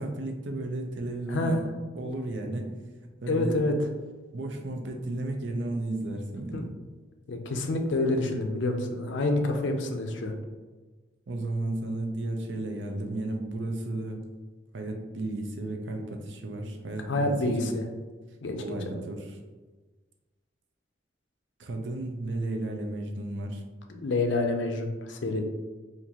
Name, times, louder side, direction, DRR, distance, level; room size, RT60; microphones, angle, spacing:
voice 1, 0.0-1.6 1.9-2.8 3.2-3.6 4.3-6.7 11.3-14.2 14.7-17.7 18.6-19.4 21.6-23.6, right 2 dB, 80° right, 3 dB, 0.6 m, -33 dB
voice 2, 1.3-1.6 3.3-3.7 6.5-6.7 7.3-10.3 17.1-17.9 18.4-19.0 24.0-25.4, left 2 dB, 90° left, 4 dB, 0.5 m, -28 dB
4.4 x 2.5 x 2.8 m, 1.3 s
head